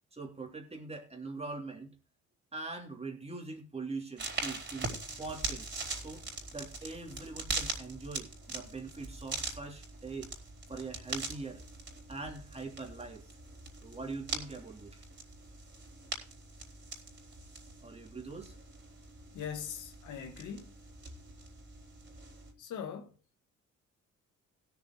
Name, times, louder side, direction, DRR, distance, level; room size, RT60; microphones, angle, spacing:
voice 1, 0.1-1.9 2.5-4.9 5.2-10.3 10.7-11.6 12.1-13.3 13.8-15.0 17.8-18.6, right 3 dB, 20° right, 3.2 m, -42 dB
sound 1, 4.2-22.5, right 3 dB, 35° right, 4.7 m, -42 dB
voice 2, 19.3-20.7 22.6-23.1, left 7 dB, 80° left, 2.0 m, -41 dB
16.5 x 7.0 x 4.5 m
cardioid pair, 90°, 30 cm